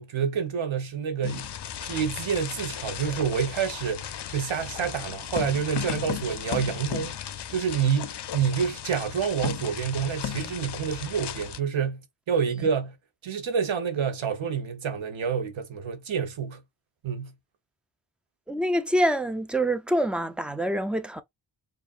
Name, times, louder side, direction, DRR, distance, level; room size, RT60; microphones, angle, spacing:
voice 1, 0.0-1.5 1.8-7.2 7.5-13.0 13.2-16.6 17.0-17.3, right 7 dB, 85° right, 1.0 m, -28 dB
sound 1, 1.2-11.6, left 9 dB, 60° left, 0.6 m, -35 dB
voice 2, 18.5-21.2, right 1 dB, ahead, 0.4 m, -25 dB
4.8 x 2.4 x 2.4 m
wide cardioid pair, 120°, 46 cm